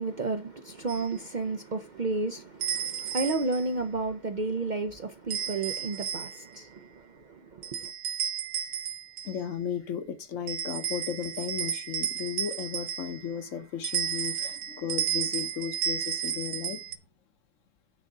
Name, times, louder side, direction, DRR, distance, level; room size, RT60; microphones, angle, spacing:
voice 1, 0.0-7.9, right 3 dB, 65° right, 0.4 m, -32 dB
sound 1, 0.9-1.1 2.6-3.7 5.3-6.5 7.6-9.4 10.5-13.3 13.8-16.9, right 9 dB, 85° right, 1.3 m, -33 dB
voice 2, 9.2-16.8, left 8 dB, 60° left, 1.3 m, -35 dB
9.6 x 3.8 x 6.4 m
omnidirectional pair, 1.6 m